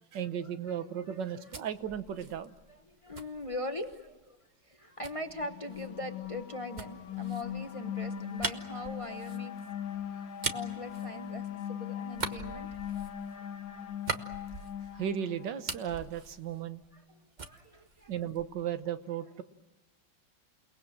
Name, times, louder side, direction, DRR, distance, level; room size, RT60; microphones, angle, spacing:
voice 1, 0.1-2.5 14.9-16.8 18.1-19.4, right 9 dB, 60° right, 11 dB, 1.5 m, -35 dB
sound 1, 1.1-4.1 5.0-11.7 12.1-15.1 15.4-17.1 17.4-18.7, right 4 dB, 35° right, 0.8 m, -42 dB
voice 2, 2.7-4.4 4.7-9.5 10.1-13.1 16.9-18.1, left 1 dB, 30° left, 6 dB, 0.6 m, -41 dB
sound 2, 5.3-15.8, left 9 dB, 65° left, 1.8 m, -40 dB
29.0 x 19.5 x 7.5 m, 1.2 s
omnidirectional pair, 2.4 m